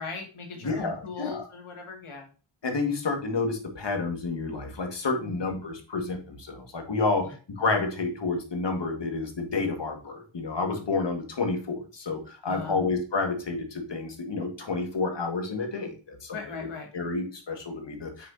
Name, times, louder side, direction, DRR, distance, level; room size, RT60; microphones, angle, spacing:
voice 1, 0.0-2.3 5.2-5.4 7.2-7.3 12.4-12.8 16.3-16.9, left 4 dB, 80° left, 2 dB, 2.3 m, -39 dB
voice 2, 0.6-1.4 2.6-16.7 16.9-18.3, left 3 dB, 60° left, 4 dB, 2.1 m, -30 dB
7.4 x 6.0 x 2.8 m, 0.36 s
cardioid pair, 60°, 49 cm